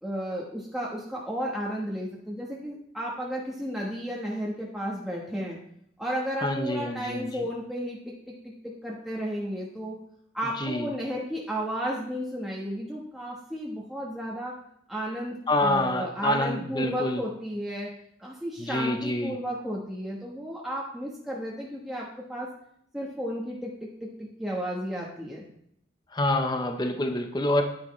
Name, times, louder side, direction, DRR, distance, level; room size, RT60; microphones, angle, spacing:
voice 1, 0.0-5.6 6.0-10.0 10.3-14.6 14.9-17.9 18.2-22.5 22.9-25.4, equal, ahead, -4 dB, 1.1 m, -33 dB
voice 2, 6.4-7.4 10.6-10.9 15.5-17.2 18.6-19.4 26.1-27.6, left 1 dB, 20° left, 5 dB, 0.7 m, -27 dB
10.0 x 9.6 x 3.1 m, 0.72 s
head